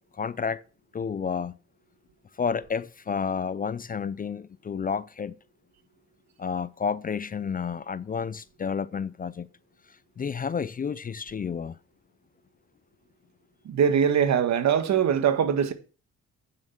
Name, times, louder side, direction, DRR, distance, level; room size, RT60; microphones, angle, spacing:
voice 1, 0.2-0.6 0.9-1.6 2.4-5.3 6.4-9.5 10.2-11.8 14.9-15.1, left 6 dB, 30° left, 0.4 m, -30 dB
voice 2, 13.6-15.7, right 8 dB, 65° right, 1.6 m, -22 dB
9.1 x 7.3 x 5.9 m
cardioid pair, 90°, 30 cm